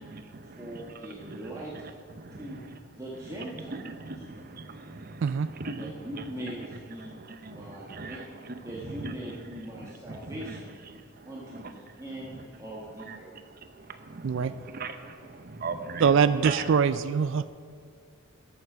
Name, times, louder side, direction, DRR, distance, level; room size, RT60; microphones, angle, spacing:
voice 1, 0.0-0.9 1.2-1.6 2.2-2.6 3.7-5.9 7.0-8.2 9.0-9.1 9.8-10.5 10.9-11.7 13.1-13.2 13.7-16.1 16.4-16.7, right 4 dB, 45° right, 8 dB, 0.8 m, -40 dB
voice 2, 0.6-1.7 2.4-2.6 2.9-3.7 5.8-7.2 7.5-10.8 11.2-13.2, right 1 dB, 15° right, -5 dB, 1.4 m, -41 dB
voice 3, 16.0-17.5, right 6 dB, 60° right, 13 dB, 0.3 m, -23 dB
13.0 x 7.1 x 6.1 m, 2.2 s
head